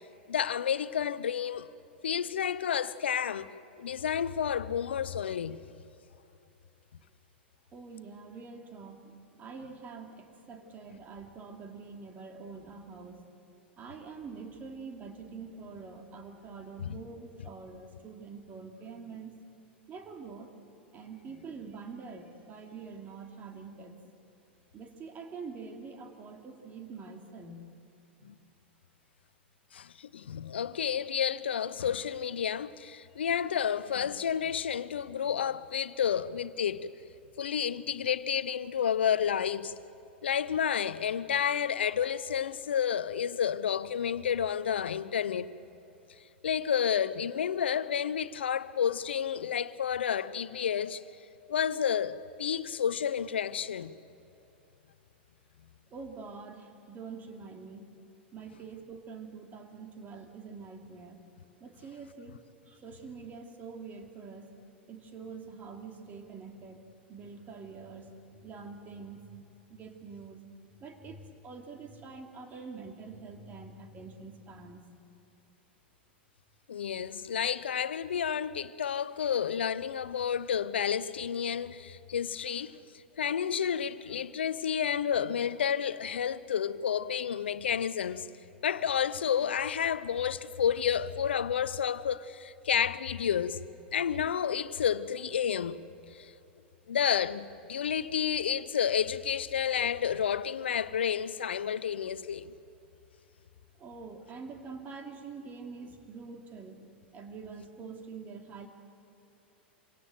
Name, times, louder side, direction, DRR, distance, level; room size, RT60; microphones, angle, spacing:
voice 1, 0.3-1.7 2.0-3.5 3.8-5.6 16.8-16.9 28.2-28.3 29.7-36.9 37.4-39.7 40.2-45.5 46.4-51.0 51.5-53.9 76.7-88.3 88.6-93.6 93.9-95.8 96.1-96.3 96.9-102.5, left 8 dB, 75° left, 0.8 m, -30 dB
voice 2, 7.7-13.2 13.8-19.4 19.9-20.5 20.9-24.0 24.7-27.7 55.9-57.9 58.3-61.2 61.6-64.6 64.9-69.4 69.7-70.4 70.8-74.8 103.8-106.9 107.1-108.7, right 4 dB, 30° right, 2.9 m, -45 dB
26.5 x 17.5 x 7.9 m
hypercardioid pair, 95°, 6 cm